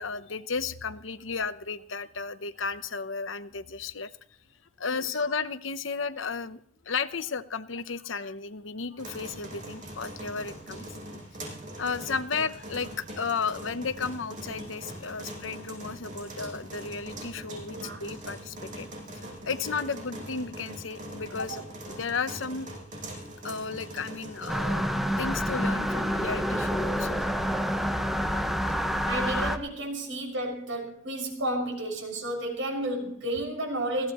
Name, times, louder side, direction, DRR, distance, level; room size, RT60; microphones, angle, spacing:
voice 1, 0.0-4.1 4.8-6.6 6.8-10.8 11.8-18.9 19.4-22.7 23.4-24.9 25.2-27.4 28.2-28.5, left 5 dB, 75° left, 12 dB, 0.9 m, -34 dB
sound 1, 9.0-24.5, right 1 dB, 40° right, 6.7 m, -42 dB
voice 2, 17.7-18.0 21.5-21.6 29.1-34.1, right 1 dB, 75° right, 2 dB, 6.5 m, -32 dB
sound 2, 24.5-29.6, equal, ahead, 1.1 m, -28 dB
21.0 x 16.5 x 3.1 m, 0.65 s
head